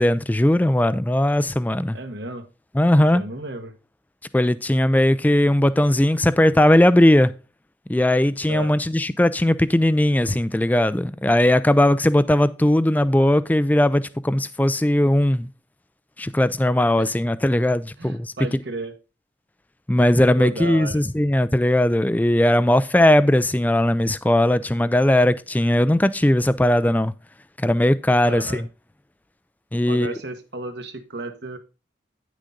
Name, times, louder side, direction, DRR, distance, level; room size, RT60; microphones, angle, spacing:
voice 1, 0.0-2.0 2.7-3.2 4.3-7.3 7.9-15.5 16.2-18.3 19.9-27.1 27.6-28.7 29.7-30.2, left 1 dB, 10° left, 0.3 m, -18 dB
voice 2, 1.9-2.5 3.0-3.7 8.5-8.7 17.0-17.1 18.0-18.9 20.4-21.0 28.2-28.6 29.9-31.6, right 2 dB, 65° right, 1.4 m, -33 dB
9.8 x 6.4 x 3.8 m
head